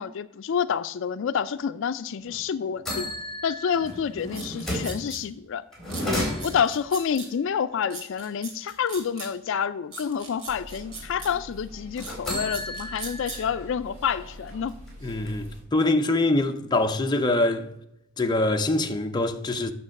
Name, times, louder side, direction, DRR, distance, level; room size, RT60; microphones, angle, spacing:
voice 1, 0.0-3.1 3.4-5.6 6.4-14.7, left 7 dB, 65° left, 0.4 m, -28 dB
sound 1, 2.2-2.4 2.8-5.0 5.7-6.8 11.9-13.5 14.0-14.1 14.5-15.5, left 1 dB, ahead, 3.7 m, -33 dB
sound 2, 4.3-5.2 5.9-7.3 7.9-9.3 9.9-11.3 12.0-13.4, right 3 dB, 80° right, 2.7 m, -39 dB
voice 2, 6.0-6.5 15.0-17.7 18.2-19.7, left 2 dB, 20° left, 0.6 m, -24 dB
sound 3, 10.5-15.6, equal, 35° right, 3.0 m, -44 dB
8.5 x 6.5 x 6.4 m
head